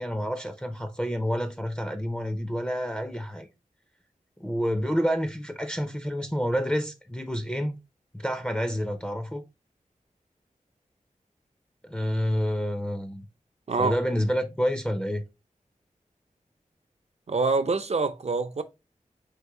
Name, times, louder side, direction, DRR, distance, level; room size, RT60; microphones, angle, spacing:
voice 1, 0.0-3.5 4.4-7.8 8.1-9.4 11.8-13.2 13.8-15.2, equal, 10° left, 0.5 m, -28 dB
voice 2, 17.3-18.6, right 4 dB, 50° right, 0.5 m, -25 dB
4.6 x 3.0 x 2.9 m
wide cardioid pair, 65°, 14 cm